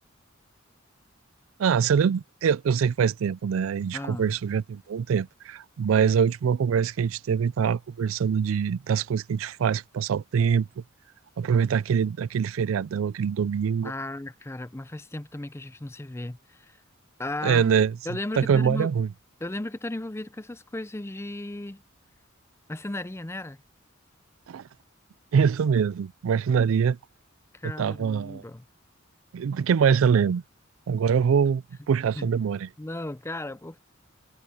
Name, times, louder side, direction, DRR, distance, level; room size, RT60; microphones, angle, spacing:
voice 1, 1.6-10.8 11.4-13.9 17.4-18.0 18.4-19.1 24.5-24.7 25.3-27.0 27.6-28.4 29.3-30.4 30.9-32.7, right 7 dB, 80° right, 0.4 m, -24 dB
voice 2, 3.9-4.4 13.8-16.8 17.2-17.7 18.1-18.9 19.4-21.8 22.7-23.6 27.5-28.7 32.2-32.3 32.8-33.9, left 1 dB, 15° left, 0.5 m, -35 dB
head